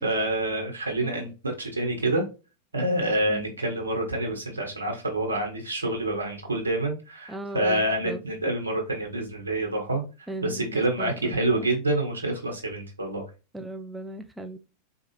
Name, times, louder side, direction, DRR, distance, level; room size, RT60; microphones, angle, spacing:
voice 1, 0.0-2.2 2.7-10.0 10.4-13.2, right 1 dB, 75° right, 1.2 m, -27 dB
voice 2, 7.3-8.2 10.3-11.7 13.5-14.6, right 2 dB, 5° right, 0.3 m, -38 dB
4.3 x 2.3 x 3.1 m
figure-of-eight pair, 90°, 0 cm